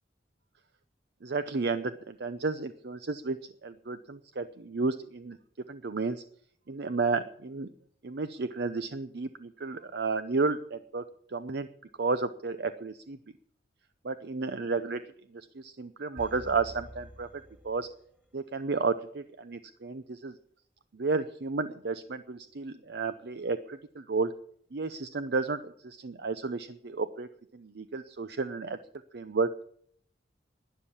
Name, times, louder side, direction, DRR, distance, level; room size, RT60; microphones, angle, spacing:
voice 1, 1.2-5.4 5.7-6.2 6.7-7.7 8.0-11.7 12.0-13.2 14.0-15.0 15.3-17.9 18.3-20.4 20.9-24.3 24.7-27.3 27.5-28.8 29.1-29.5, right 4 dB, 60° right, 11 dB, 0.6 m, -32 dB
sound 1, 16.2-18.3 18.7-18.8, equal, 10° right, 1.9 m, -48 dB
12.5 x 9.9 x 8.7 m, 0.63 s
head